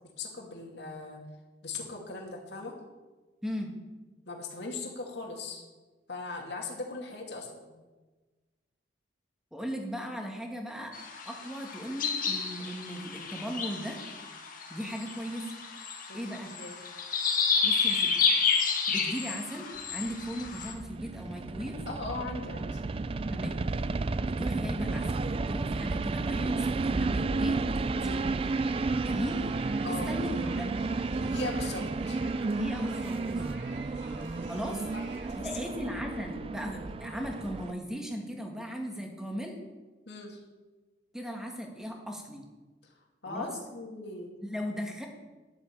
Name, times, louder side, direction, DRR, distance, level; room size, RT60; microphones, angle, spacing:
voice 1, 0.2-1.2 1.6-2.7 4.3-5.6 6.1-7.7 16.1-16.8 21.9-22.8 27.9-28.2 29.8-30.1 31.1-32.2 34.9-35.8 40.1-40.4 43.2-44.3, left 3 dB, 65° left, 0 dB, 2.5 m, -39 dB
voice 2, 3.4-3.7 9.5-10.9 11.2-14.0 14.7-15.5 16.1-16.5 17.6-18.1 18.9-21.8 23.3-23.6 24.2-28.2 29.0-29.4 29.9-30.8 32.6-33.2 34.5-34.8 35.3-39.6 41.1-42.5 43.3-43.5 44.4-45.1, equal, 5° right, 1 dB, 1.8 m, -37 dB
sound 1, 10.9-20.7, left 5 dB, 50° left, 1.8 m, -30 dB
sound 2, 20.1-37.7, right 3 dB, 30° right, 0.4 m, -32 dB
sound 3, 28.0-35.3, right 3 dB, 80° right, 2.6 m, -49 dB
11.0 x 7.5 x 8.3 m, 1.2 s
head